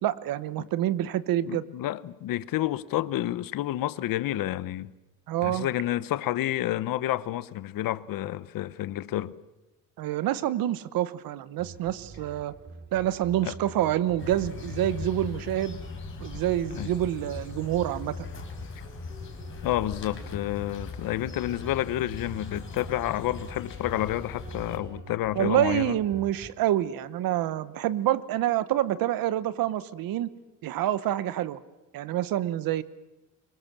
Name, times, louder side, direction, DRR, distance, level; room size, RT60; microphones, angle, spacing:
voice 1, 0.0-1.6 5.3-5.7 10.0-12.5 12.9-15.8 16.2-18.3 25.3-30.3 30.6-31.6 31.9-32.8, right 13 dB, 90° right, 1.1 m, -27 dB
voice 2, 1.5-4.9 5.4-9.4 13.4-13.5 16.7-16.9 19.6-26.0, left 14 dB, 80° left, 0.9 m, -30 dB
sound 1, 11.6-26.5, right 3 dB, 30° right, 2.5 m, -46 dB
sound 2, 14.2-24.8, left 6 dB, 35° left, 4.2 m, -40 dB
25.0 x 24.0 x 7.4 m
cardioid pair, 170°, 34 cm